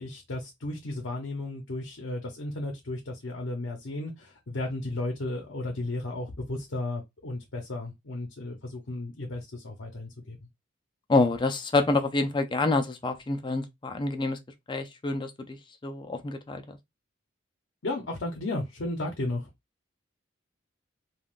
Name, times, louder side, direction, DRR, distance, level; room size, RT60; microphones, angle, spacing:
voice 1, 0.0-10.4 17.8-19.5, left 2 dB, 70° left, 0.7 m, -34 dB
voice 2, 11.1-14.4 14.7-15.6 15.8-16.8, left 3 dB, 25° left, 0.4 m, -27 dB
3.5 x 2.3 x 2.4 m
head